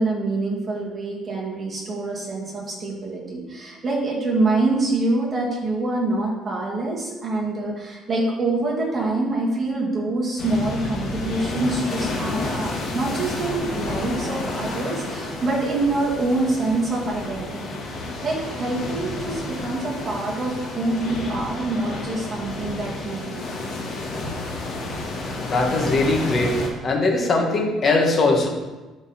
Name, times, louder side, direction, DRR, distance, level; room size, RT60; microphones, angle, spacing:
voice 1, 0.0-17.8 18.2-23.4, right 2 dB, 25° right, -3 dB, 2.1 m, -25 dB
sound 1, 10.4-26.7, left 2 dB, 50° left, 1.9 m, -30 dB
voice 2, 25.5-26.5 26.8-28.5, left 3 dB, 30° left, 1 dB, 1.5 m, -20 dB
11.5 x 4.0 x 4.3 m, 1.2 s
cardioid pair, 145°, 0 cm